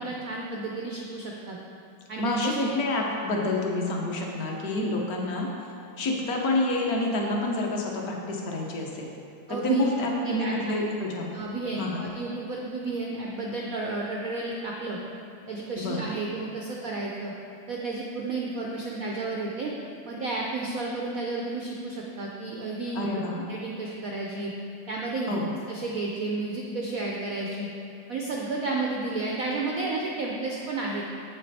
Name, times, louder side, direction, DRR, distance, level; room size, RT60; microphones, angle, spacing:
voice 1, 0.0-1.6 2.1-2.7 9.5-9.8 10.2-10.7 11.3-15.0 15.5-17.3 17.7-19.7 20.0-23.1 23.5-24.5 24.9-25.3 25.7-27.7 28.1-31.0, right 3 dB, 85° right, -2 dB, 0.7 m, -31 dB
voice 2, 2.2-5.5 6.0-9.1 9.6-11.3 11.8-12.0 15.8-16.1 22.9-23.4 25.3-25.5, left 2 dB, 50° left, 0 dB, 1.3 m, -28 dB
7.9 x 7.6 x 4.1 m, 2.7 s
omnidirectional pair, 2.4 m